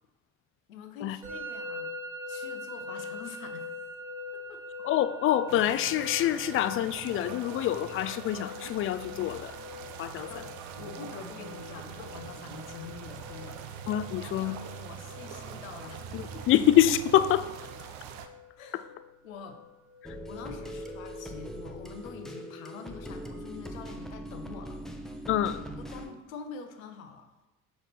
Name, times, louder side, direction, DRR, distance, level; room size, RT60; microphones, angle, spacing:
voice 1, 0.7-1.9 2.3-3.8 4.3-4.6 10.3-13.6 14.3-16.4 17.8-17.9 18.6-18.9 19.2-19.6 20.3-24.8 25.8-27.3, left 5 dB, 75° left, 7 dB, 0.8 m, -45 dB
Musical instrument, 1.2-20.1, left 2 dB, 90° right, 1.8 m, -44 dB
voice 2, 4.8-9.6 10.0-10.3 13.9-14.6 16.1-17.5 25.3-25.6, left 12 dB, 35° left, 13 dB, 0.4 m, -26 dB
sound 1, 5.5-18.3, right 8 dB, 65° right, 0.7 m, -43 dB
sound 2, 20.0-26.1, equal, ahead, 0.9 m, -41 dB
6.5 x 4.6 x 4.1 m, 1.1 s
figure-of-eight pair, 55°, 41 cm